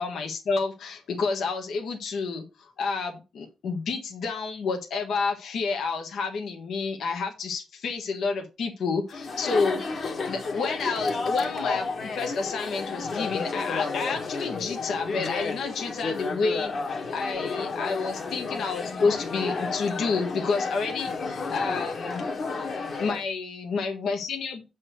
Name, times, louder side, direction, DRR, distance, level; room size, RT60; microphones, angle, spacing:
voice 1, 0.0-9.8 10.3-11.9 12.2-16.7 17.1-22.2 23.0-24.6, left 4 dB, 70° left, 2 dB, 1.3 m, -29 dB
Chatter, 9.1-23.2, left 4 dB, 45° left, 1.6 m, -31 dB
7.9 x 4.2 x 6.4 m, 0.28 s
wide cardioid pair, 150°, 0 cm